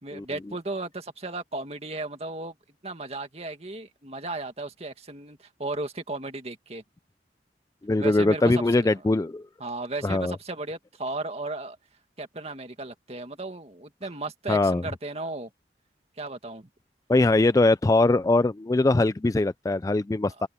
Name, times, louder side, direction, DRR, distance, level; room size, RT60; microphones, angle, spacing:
voice 1, 0.0-2.6 2.8-6.8 8.0-9.0 9.6-11.8 12.2-15.5 16.2-16.7 20.3-20.4, right 2 dB, 35° right, 2.1 m, -35 dB
voice 2, 7.8-9.4 10.0-10.3 14.5-14.8 17.1-20.5, left 2 dB, 20° left, 0.3 m, -22 dB
head